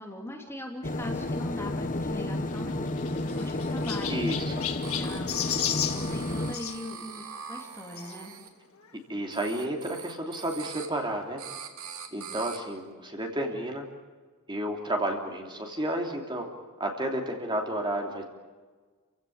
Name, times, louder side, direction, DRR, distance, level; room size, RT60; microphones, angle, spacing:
voice 1, 0.0-8.4 12.1-12.4, left 1 dB, 10° left, 1 dB, 2.8 m, -41 dB
sound 1, 0.8-6.5, left 2 dB, 35° left, 1.1 m, -31 dB
Chirp tweet, 2.5-6.8 8.0-8.1 8.8-8.9 9.2-9.3 10.5-10.6, left 10 dB, 70° left, 1.9 m, -34 dB
sound 2, 3.2-4.1 4.8-8.5 9.3-10.9 11.4-12.6, right 7 dB, 75° right, 2.9 m, -43 dB
voice 2, 4.1-4.6 9.1-11.4 12.1-13.9 14.5-16.5 16.8-18.2, right 1 dB, 20° right, 2 dB, 3.1 m, -31 dB
28.5 x 16.5 x 8.7 m, 1.4 s
head